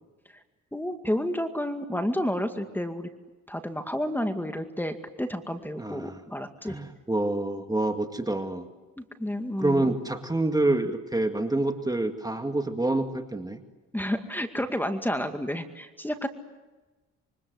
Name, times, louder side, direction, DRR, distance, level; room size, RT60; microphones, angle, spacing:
voice 1, 0.7-3.1 3.5-6.8 9.0-9.9 13.9-16.3, equal, 5° left, 7 dB, 2.2 m, -30 dB
voice 2, 5.8-6.2 6.6-8.7 9.6-13.6, right 2 dB, 10° right, 6 dB, 2.0 m, -27 dB
26.5 x 24.0 x 8.0 m, 1.2 s
cardioid pair, 90°, 30 cm